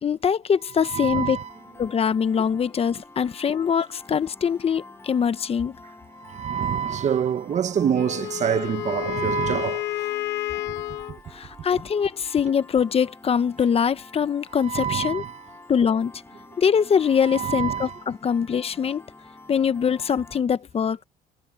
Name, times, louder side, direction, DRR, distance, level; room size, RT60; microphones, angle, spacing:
voice 1, 0.0-1.4 1.8-5.8 11.3-15.2 15.7-16.1 16.6-19.0 19.5-21.0, left 7 dB, 35° left, 0.9 m, -23 dB
voice 2, 0.8-1.5 6.2-10.1 14.6-15.4 17.2-18.0, right 8 dB, 45° right, 1.1 m, -26 dB
Piano, 1.4-20.4, left 2 dB, 15° left, 4.6 m, -48 dB
Wind instrument woodwind instrument, 7.9-11.2, left 15 dB, 80° left, 1.4 m, -30 dB
cardioid pair, 110°, 17 cm